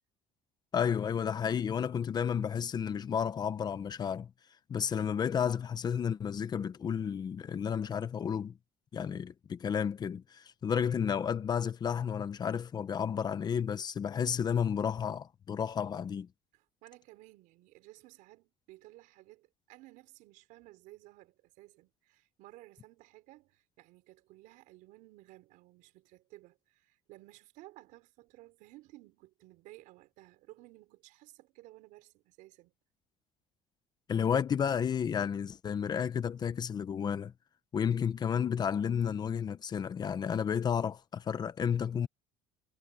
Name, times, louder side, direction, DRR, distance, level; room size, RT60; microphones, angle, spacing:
voice 1, 0.7-4.3 4.7-8.5 8.9-16.3 34.1-37.3 37.7-42.1, left 7 dB, 30° left, 1.0 m, -32 dB
voice 2, 16.5-32.7, right 19 dB, 75° right, 4.9 m, -56 dB
cardioid pair, 140°, 14 cm